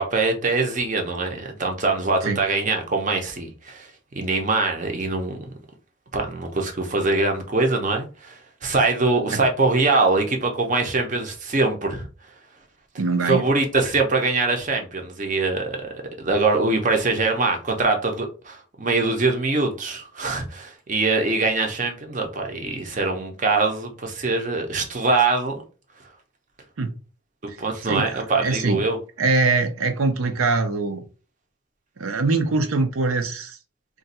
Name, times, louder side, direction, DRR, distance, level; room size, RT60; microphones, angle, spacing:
voice 1, 0.0-3.9 4.1-5.4 6.1-12.1 13.3-25.6 27.6-29.0, right 3 dB, 35° right, 0.6 m, -23 dB
voice 2, 13.0-13.4 26.8-26.9 27.5-27.6 27.9-28.8 29.2-31.0 32.0-33.6, right 3 dB, 85° right, 0.6 m, -23 dB
2.5 x 2.3 x 4.0 m
head